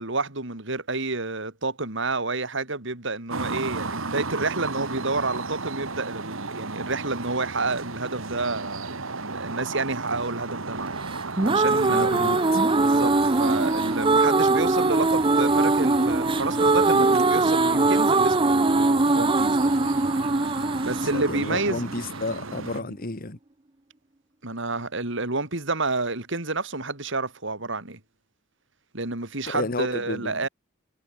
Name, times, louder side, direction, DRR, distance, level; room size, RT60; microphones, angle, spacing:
voice 1, 0.0-10.9 11.4-12.1 12.7-19.7 20.8-21.8 22.8-22.9 24.4-28.0 28.9-30.5, right 3 dB, 65° right, 3.9 m, -29 dB
sound 1, 3.3-22.8, right 3 dB, 90° right, 2.5 m, -34 dB
sound 2, 11.1-22.2, right 3 dB, 25° right, 0.9 m, -21 dB
voice 2, 11.9-12.6 20.8-23.4 29.5-30.4, left 2 dB, 45° left, 2.1 m, -32 dB
head